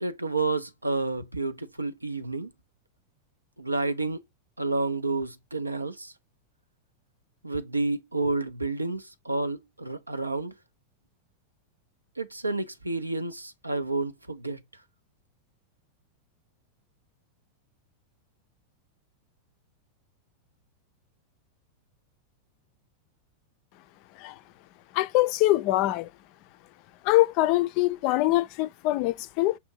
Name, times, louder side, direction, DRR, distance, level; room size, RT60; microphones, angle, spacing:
voice 1, 0.0-2.5 3.6-4.2 4.6-6.1 7.4-10.5 12.2-14.6, right 3 dB, 85° right, 0.4 m, -30 dB
voice 2, 24.9-26.1 27.0-29.6, left 17 dB, 45° left, 0.3 m, -23 dB
5.4 x 2.6 x 2.6 m
figure-of-eight pair, 90°, 0 cm